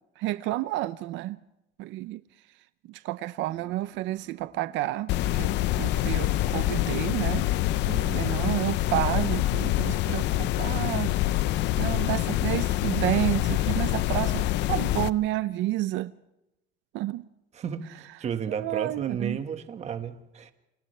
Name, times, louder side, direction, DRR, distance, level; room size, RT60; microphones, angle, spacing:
voice 1, 0.2-1.4 1.8-2.2 2.9-5.1 5.4-7.5 8.1-11.1 11.8-16.1 16.9-17.2 18.5-19.4, right 16 dB, 85° right, 0.6 m, -30 dB
sound 1, 3.4-8.3, right 4 dB, 65° right, 7.7 m, -55 dB
sound 2, 5.1-15.1, left 15 dB, 70° left, 0.7 m, -26 dB
voice 2, 7.8-8.4 17.5-20.5, right 7 dB, 35° right, 1.6 m, -33 dB
29.0 x 27.5 x 3.3 m
cardioid pair, 165°, 19 cm